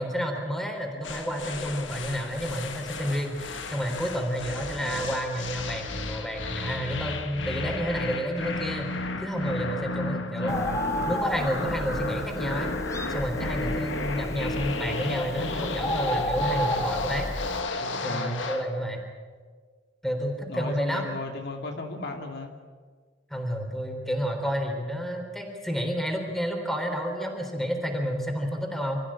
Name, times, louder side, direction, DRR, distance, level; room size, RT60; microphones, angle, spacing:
voice 1, 0.0-8.9 9.2-10.7 11.1-12.7 13.1-17.3 18.0-19.0 20.0-21.1 23.3-29.0, equal, ahead, 3 dB, 3.8 m, -30 dB
sound 1, 1.0-18.7, left 3 dB, 85° left, 1.7 m, -33 dB
voice 2, 10.4-11.1 17.7-18.4 20.5-22.5, left 2 dB, 65° left, 3 dB, 2.4 m, -36 dB
Bird, 10.5-17.6, equal, 15° left, 1.7 m, -32 dB
26.0 x 15.0 x 8.7 m, 1.5 s
head